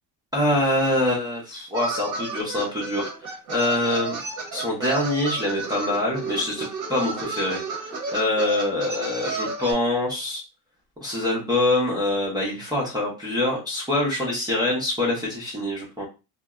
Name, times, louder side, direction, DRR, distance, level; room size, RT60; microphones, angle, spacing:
voice 1, 0.3-4.2 4.5-10.4 11.0-16.1, left 1 dB, 10° right, -7 dB, 0.6 m, -25 dB
sound 1, 1.7-9.7, right 4 dB, 40° right, 0.8 m, -32 dB
2.6 x 2.0 x 2.3 m, 0.29 s
cardioid pair, 145°, 45 cm